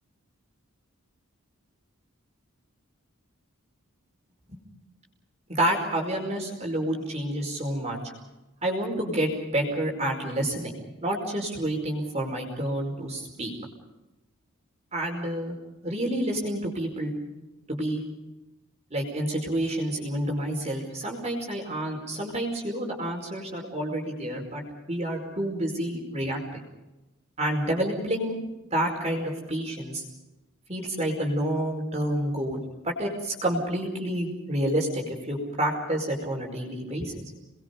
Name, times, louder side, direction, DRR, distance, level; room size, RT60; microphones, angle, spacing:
voice 1, 5.5-8.0 8.6-10.7 11.0-13.5 14.9-15.5 15.8-17.2 17.7-18.0 18.9-24.6 24.9-26.6 27.4-28.4 28.7-30.0 30.7-37.1, right 1 dB, 30° right, 0 dB, 5.0 m, -29 dB
30.0 x 21.5 x 5.4 m, 1.0 s
head